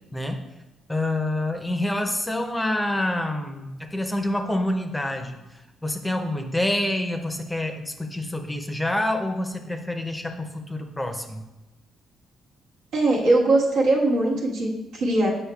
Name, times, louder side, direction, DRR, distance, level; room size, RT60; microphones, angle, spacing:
voice 1, 0.9-11.4, left 1 dB, 10° left, 4 dB, 0.6 m, -27 dB
voice 2, 12.9-15.3, right 2 dB, 80° right, -4 dB, 1.4 m, -21 dB
8.1 x 5.5 x 2.3 m, 1.0 s
cardioid pair, 90°, 0 cm